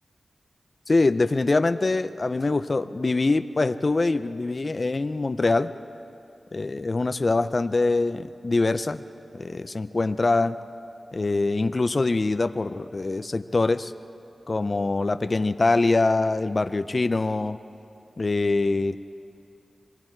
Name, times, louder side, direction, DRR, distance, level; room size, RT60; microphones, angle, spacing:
voice 1, 0.9-5.7 6.5-9.0 9.3-10.6 11.1-13.9 14.5-17.6 18.2-19.0, left 3 dB, 50° left, 11 dB, 0.6 m, -24 dB
26.5 x 21.5 x 4.6 m, 2.7 s
cardioid pair, 45°, 0 cm